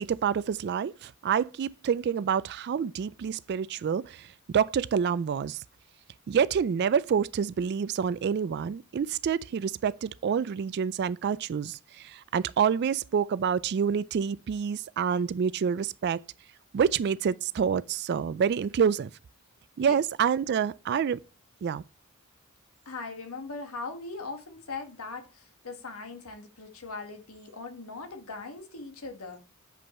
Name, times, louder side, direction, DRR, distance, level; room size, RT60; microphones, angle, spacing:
voice 1, 0.0-5.6 6.3-16.2 16.7-19.1 19.8-21.2 21.6-21.8, right 7 dB, 50° right, 0.3 m, -27 dB
voice 2, 22.8-29.4, left 3 dB, 80° left, 1.5 m, -40 dB
7.6 x 5.4 x 4.2 m
head